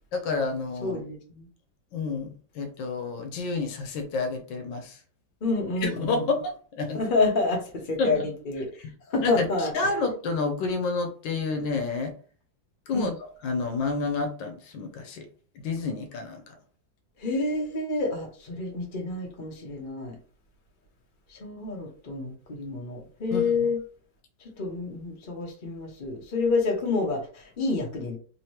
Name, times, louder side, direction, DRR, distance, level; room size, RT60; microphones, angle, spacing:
voice 1, 0.1-1.0 1.9-5.0 5.8-7.0 8.0-8.3 8.8-12.1 12.9-15.3 15.5-16.6 23.3-23.7, left 3 dB, 80° left, 1.4 m, -30 dB
voice 2, 0.8-1.5 5.4-6.2 6.9-8.8 9.1-9.7 12.9-13.1 17.2-20.1 21.3-23.8 24.6-28.2, left 3 dB, 35° left, 0.9 m, -28 dB
3.6 x 2.8 x 3.1 m
omnidirectional pair, 2.0 m